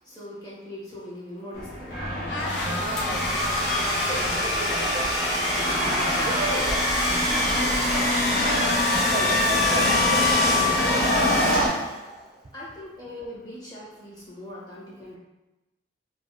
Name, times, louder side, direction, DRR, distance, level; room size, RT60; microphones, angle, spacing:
voice 1, 0.0-1.9 12.5-15.2, left 1 dB, 25° left, -8 dB, 1.3 m, -40 dB
sound 1, 1.5-11.7, equal, 55° left, 0.8 m, -27 dB
sound 2, 2.3-11.8, left 2 dB, 75° left, 0.5 m, -29 dB
voice 2, 2.5-3.3 3.8-5.1 6.2-8.7 9.1-10.7, right 1 dB, 40° right, 0 dB, 0.4 m, -34 dB
Domestic sounds home sounds, 3.0-12.1, left 2 dB, ahead, 1.0 m, -26 dB
4.8 x 2.2 x 2.5 m, 1.0 s
head